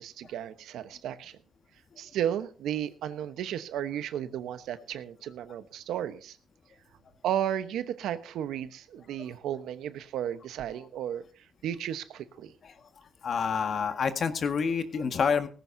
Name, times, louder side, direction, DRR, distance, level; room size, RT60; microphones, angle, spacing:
voice 1, 0.0-1.3 2.0-6.4 7.2-11.2 11.6-12.5, right 10 dB, 80° right, 12 dB, 1.1 m, -34 dB
voice 2, 13.2-15.5, left 6 dB, 50° left, 8 dB, 1.8 m, -28 dB
18.5 x 15.5 x 2.8 m, 0.37 s
cardioid pair, 90°, 0 cm